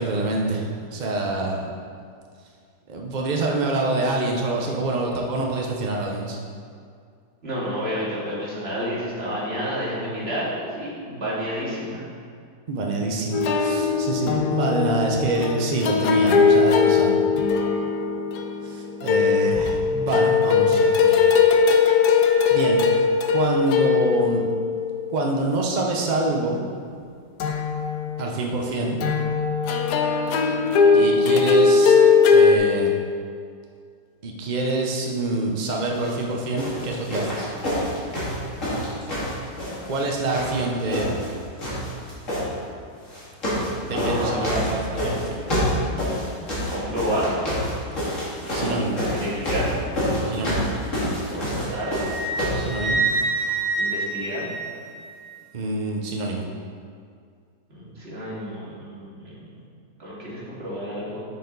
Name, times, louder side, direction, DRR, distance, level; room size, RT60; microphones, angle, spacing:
voice 1, 0.0-1.6 2.9-6.4 12.7-17.3 18.6-21.2 22.5-22.8 23.3-24.4 25.1-26.6 28.2-29.0 30.9-32.0 32.3-32.9 34.2-37.5 39.9-41.1 43.8-45.4 47.9-48.1 48.5-49.0 50.2-50.6 52.5-53.0 55.5-56.5, right 2 dB, 65° right, 0 dB, 0.4 m, -26 dB
voice 2, 7.4-12.0 43.9-44.7 46.7-47.3 49.0-49.8 51.3-52.0 53.8-54.5 57.7-59.4 60.0-61.2, equal, 35° right, -8 dB, 2.4 m, -30 dB
sound 1, 13.3-25.3 27.4-28.2 29.0-32.6, left 5 dB, 65° left, 1.2 m, -19 dB
sound 2, 35.9-36.2 36.6-40.1 40.3-41.3 41.6-42.4 43.1-43.7 44.0-52.7 53.5-53.6, left 1 dB, 40° left, 2.6 m, -27 dB
Wind instrument woodwind instrument, 51.7-55.2, right 3 dB, 20° left, 1.9 m, -27 dB
8.7 x 6.8 x 3.9 m, 2.2 s
omnidirectional pair, 2.0 m